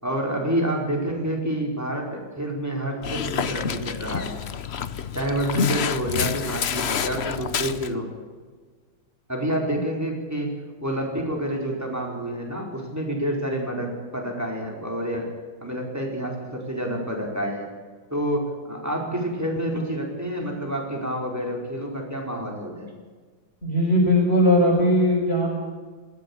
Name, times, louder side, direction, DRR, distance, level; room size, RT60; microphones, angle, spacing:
voice 1, 0.0-4.4 5.1-8.1 9.3-10.5 10.8-15.3 15.6-17.7 18.1-22.9, right 1 dB, 5° right, 0 dB, 4.7 m, -28 dB
Dog, 3.0-7.9, left 7 dB, 60° left, 0.6 m, -28 dB
voice 2, 23.6-25.5, left 1 dB, 30° left, -3 dB, 5.3 m, -19 dB
21.0 x 16.0 x 8.7 m, 1.4 s
omnidirectional pair, 2.3 m